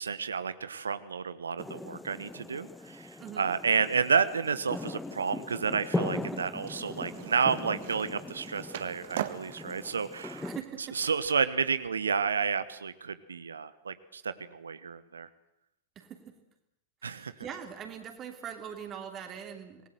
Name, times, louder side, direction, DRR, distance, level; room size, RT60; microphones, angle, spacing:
voice 1, 0.0-10.4 10.9-15.3 17.0-17.3, right 6 dB, 70° right, 13 dB, 1.1 m, -31 dB
sound 1, 1.6-10.6, left 2 dB, 5° left, 1.1 m, -39 dB
voice 2, 3.2-3.5 6.2-6.4 10.4-11.0 15.9-16.3 17.0-19.8, right 8 dB, 30° right, 4 dB, 3.1 m, -42 dB
Skateboard, 6.6-11.9, right 12 dB, 55° right, 1.6 m, -43 dB
27.0 x 20.0 x 7.9 m, 0.81 s
figure-of-eight pair, 90°, 0 cm